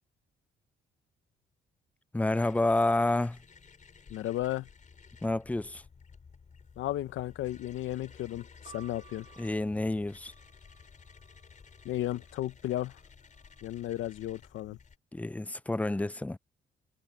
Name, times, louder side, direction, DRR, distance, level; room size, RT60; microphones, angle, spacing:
voice 1, 2.1-3.4 5.2-5.8 9.4-10.3 15.1-16.4, left 2 dB, 5° left, 0.5 m, -29 dB
sound 1, 2.3-15.0, left 5 dB, 40° left, 4.0 m, -55 dB
voice 2, 4.1-4.7 6.8-9.3 11.8-13.0 13.6-14.8, left 14 dB, 80° left, 0.9 m, -34 dB
sound 2, 8.6-12.5 13.3-14.0, right 8 dB, 30° right, 3.5 m, -59 dB
cardioid pair, 90°, 20 cm